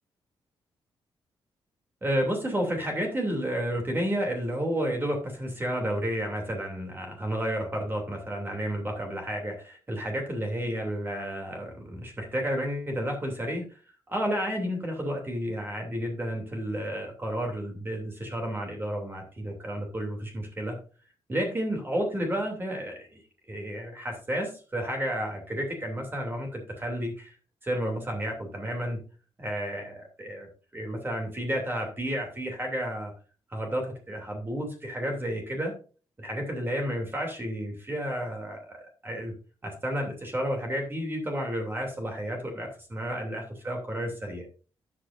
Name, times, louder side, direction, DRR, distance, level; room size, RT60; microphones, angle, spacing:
voice 1, 2.0-13.6 14.1-20.8 21.3-23.2 23.5-27.3 27.6-29.0 29.4-33.1 33.5-35.7 36.2-39.3 39.6-44.5, equal, 25° right, 1 dB, 2.9 m, -31 dB
12.5 x 8.8 x 2.6 m, 0.37 s
cardioid pair, 100°, 9 cm